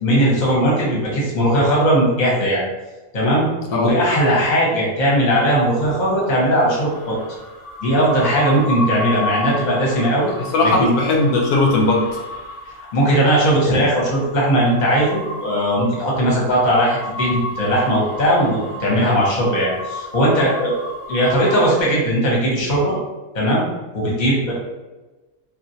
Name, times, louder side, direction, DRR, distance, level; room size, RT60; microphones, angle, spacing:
voice 1, 0.0-2.6 3.1-3.5 3.8-7.1 7.8-10.3 10.6-10.9 12.9-20.7 21.1-22.9 23.3-23.7 23.9-24.5, equal, 35° left, -5 dB, 0.9 m, -18 dB
sound 1, 5.4-21.8, left 1 dB, 65° left, 0.8 m, -33 dB
voice 2, 10.5-12.0, left 2 dB, 90° left, 0 dB, 1.1 m, -17 dB
3.1 x 2.4 x 2.7 m, 1.2 s
omnidirectional pair, 1.5 m